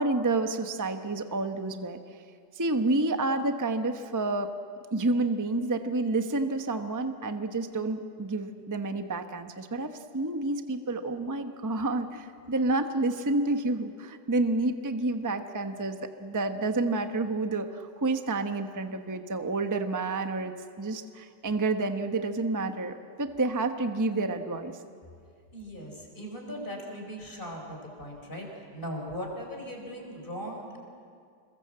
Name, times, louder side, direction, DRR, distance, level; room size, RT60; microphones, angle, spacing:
voice 1, 0.0-2.0 2.6-4.5 4.9-24.8, right 2 dB, 15° right, 7 dB, 0.8 m, -29 dB
voice 2, 25.5-30.8, equal, 30° left, 1 dB, 5.0 m, -39 dB
27.5 x 22.0 x 7.8 m, 2.3 s
omnidirectional pair, 1.9 m